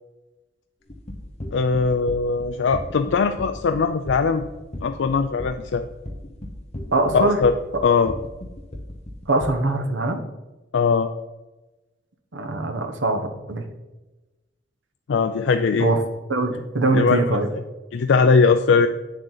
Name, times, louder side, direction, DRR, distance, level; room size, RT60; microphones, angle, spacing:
sound 1, 0.9-9.5, left 1 dB, 35° left, 1.0 m, -35 dB
voice 1, 1.5-4.4 4.8-5.9 7.1-7.5 7.8-8.1 10.7-11.1 15.1-15.9 16.9-17.3 17.9-18.9, left 5 dB, 70° left, 7 dB, 0.4 m, -20 dB
voice 2, 6.9-7.4 9.3-10.2 12.3-13.6 15.8-16.0 16.3-17.5, right 2 dB, 80° right, 6 dB, 1.0 m, -22 dB
8.1 x 6.8 x 3.9 m, 1.1 s
head